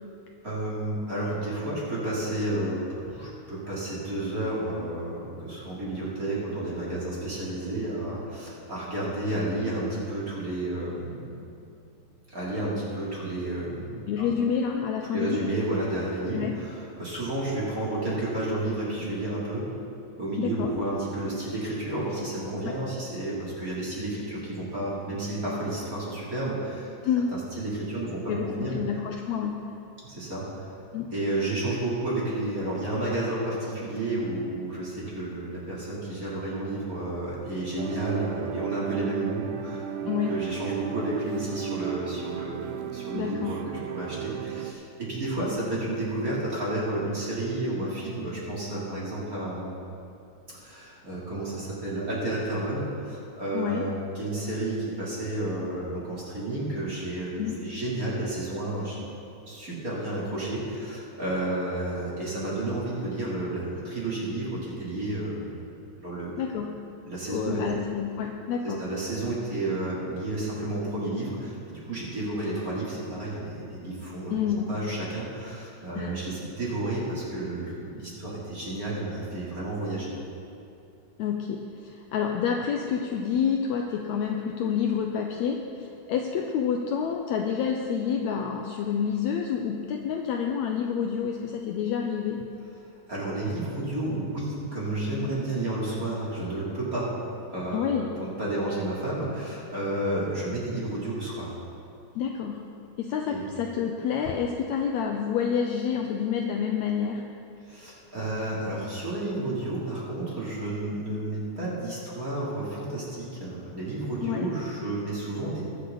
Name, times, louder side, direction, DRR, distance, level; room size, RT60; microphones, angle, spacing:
voice 1, 0.4-11.3 12.3-14.3 15.1-19.6 20.2-26.9 27.3-28.7 30.0-30.7 31.1-39.9 40.3-43.6 43.9-49.7 50.6-59.0 59.5-65.5 66.0-66.4 67.0-67.6 68.6-74.4 74.7-80.1 93.1-97.2 97.5-101.6 103.3-103.4 107.6-115.6, right 1 dB, 25° right, -8 dB, 3.3 m, -31 dB
voice 2, 14.1-15.6 16.3-16.6 20.4-20.7 22.6-22.8 27.0-27.3 28.3-29.6 30.9-31.1 40.1-40.4 43.1-43.6 53.5-53.9 57.4-57.6 66.4-66.8 67.3-68.8 74.3-74.7 76.0-76.2 81.2-92.4 97.7-98.1 102.2-102.6 103.0-107.2 114.2-114.5, left 7 dB, 80° left, 2 dB, 1.7 m, -28 dB
sound 1, 37.8-44.7, right 10 dB, 75° right, 1.9 m, -34 dB
21.5 x 8.3 x 3.9 m, 2.7 s
omnidirectional pair, 3.7 m